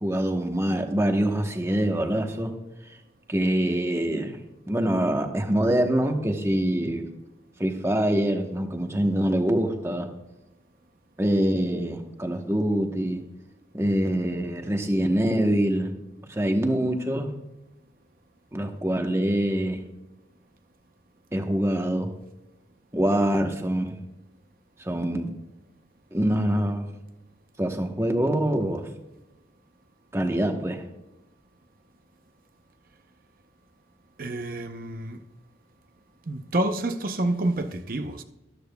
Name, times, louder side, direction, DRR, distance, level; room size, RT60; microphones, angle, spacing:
voice 1, 0.0-2.5 2.8-3.0 3.3-4.4 4.7-7.1 7.6-10.1 11.2-13.2 13.7-16.0 16.3-17.3 18.5-19.8 21.3-22.1 22.9-24.0 24.8-25.3 26.1-26.9 27.6-28.9 30.1-30.8, right 1 dB, 15° right, 1.0 m, -25 dB
voice 2, 34.2-35.2 36.3-38.2, right 1 dB, 50° right, 0.7 m, -28 dB
13.5 x 13.0 x 2.3 m
head